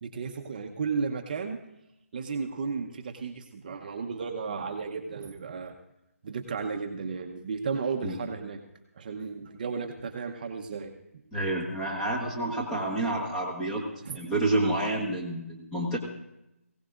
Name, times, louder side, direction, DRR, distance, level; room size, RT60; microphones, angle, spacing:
voice 1, 0.0-1.6 2.1-5.7 6.2-8.6 9.0-10.9 14.0-14.2, right 5 dB, 35° right, 3 dB, 0.9 m, -34 dB
voice 2, 11.3-13.9 14.1-16.0, right 2 dB, 5° left, -3 dB, 1.3 m, -29 dB
20.5 x 16.5 x 2.5 m, 0.88 s
figure-of-eight pair, 165°, 8 cm